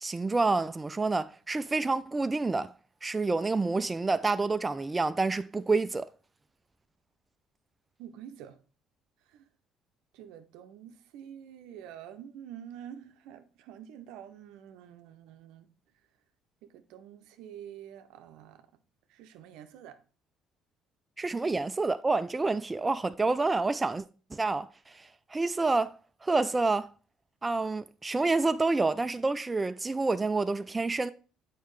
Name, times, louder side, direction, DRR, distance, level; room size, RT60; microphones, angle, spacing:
voice 1, 0.0-2.7 3.0-6.1 21.2-24.1 24.3-26.9 27.4-31.1, right 3 dB, 20° right, 0.3 m, -28 dB
voice 2, 8.0-8.6 9.3-9.5 10.1-15.7 16.6-18.7 19.1-20.0, right 9 dB, 80° right, 0.6 m, -47 dB
8.0 x 4.6 x 3.2 m
supercardioid pair, 70°, 0 cm